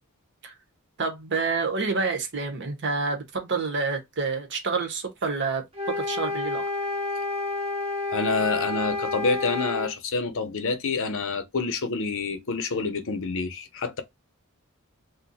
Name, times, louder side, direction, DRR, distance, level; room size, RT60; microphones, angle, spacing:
voice 1, 1.0-6.6, right 4 dB, 55° right, 0.9 m, -28 dB
sound 1, 5.7-9.9, left 3 dB, 25° right, 0.8 m, -29 dB
voice 2, 8.1-14.0, left 4 dB, 65° left, 0.7 m, -27 dB
2.5 x 2.2 x 4.0 m
head